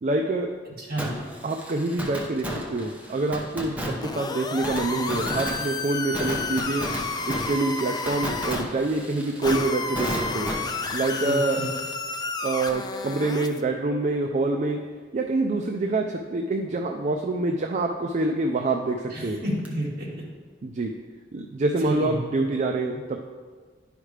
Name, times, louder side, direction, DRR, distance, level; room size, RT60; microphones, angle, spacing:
voice 1, 0.0-0.5 1.4-2.4 2.7-6.9 7.3-10.1 10.3-10.5 10.9-11.6 12.4-14.8 15.1-19.4 20.6-20.9 21.3-23.2, right 2 dB, 40° right, 3 dB, 0.4 m, -26 dB
voice 2, 0.8-1.1 11.2-11.7 19.1-20.2 21.8-22.2, right 1 dB, 55° right, -5 dB, 1.9 m, -31 dB
Fireworks, 1.0-12.6 12.9-13.0 19.6-19.7, equal, 10° right, 0.8 m, -34 dB
sound 1, 4.0-8.6 9.4-13.6, left 3 dB, 20° left, 0.4 m, -31 dB
11.0 x 5.0 x 3.3 m, 1.5 s
head